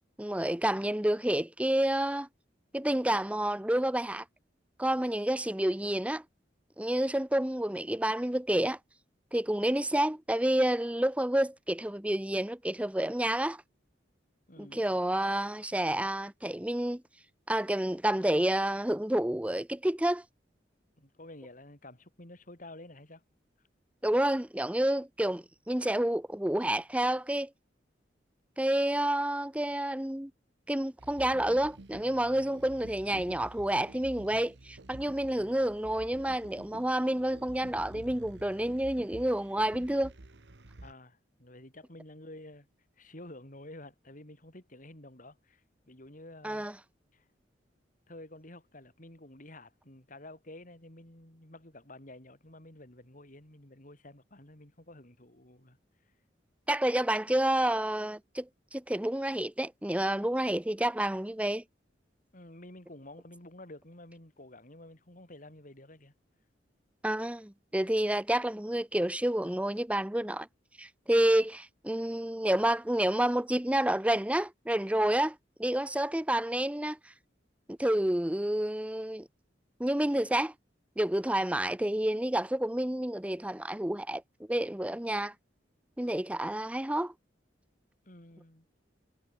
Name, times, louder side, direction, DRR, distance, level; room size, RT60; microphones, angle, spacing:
voice 1, 0.2-2.3 2.7-4.2 4.8-6.2 6.8-8.8 9.3-13.6 14.6-17.0 17.5-20.2 24.0-27.5 28.6-30.3 30.7-40.1 46.4-46.7 56.7-61.6 67.0-70.5 70.8-77.0 77.7-79.3 79.8-80.5 81.0-84.2 84.5-85.3 86.0-87.1, right 1 dB, 5° right, 0.9 m, -29 dB
voice 2, 14.5-14.8 21.0-23.2 40.8-42.7 43.0-46.7 47.1-47.3 48.1-55.8 62.3-66.1 88.0-88.7, left 1 dB, 45° left, 5.3 m, -50 dB
sound 1, 31.0-40.9, right 2 dB, 70° right, 1.3 m, -50 dB
head